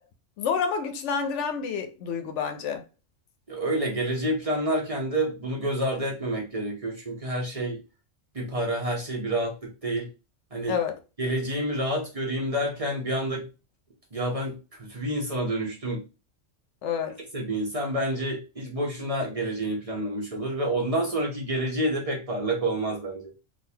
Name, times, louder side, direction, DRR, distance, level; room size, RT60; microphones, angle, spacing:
voice 1, 0.4-2.8 10.7-11.0 16.8-17.2, left 6 dB, 75° left, 0.9 m, -28 dB
voice 2, 3.5-7.8 8.3-10.1 10.5-10.8 11.2-13.5 14.1-16.0 17.3-23.3, right 1 dB, 35° right, 0.8 m, -28 dB
3.6 x 2.5 x 2.7 m
omnidirectional pair, 1.2 m